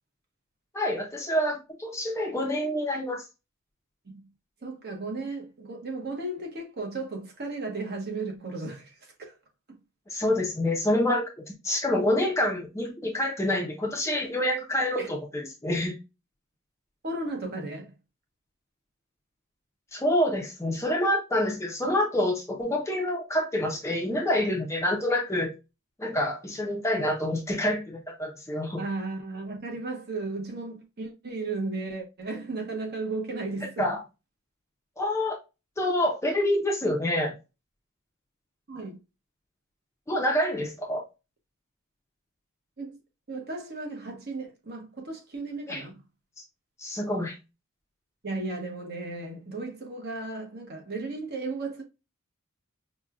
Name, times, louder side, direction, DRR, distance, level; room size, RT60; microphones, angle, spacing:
voice 1, 0.7-3.2 10.1-11.3 11.6-16.0 19.9-25.5 26.0-28.8 33.8-34.0 35.0-35.4 35.8-37.3 40.1-41.0 45.7-45.8 46.8-47.4, left 1 dB, 15° left, 0.5 m, -27 dB
voice 2, 4.6-9.4 15.0-15.1 17.0-17.9 28.8-33.9 38.7-39.0 42.8-43.0 43.3-46.0 48.2-51.8, right 3 dB, 45° right, 0.9 m, -35 dB
5.1 x 2.2 x 2.3 m
head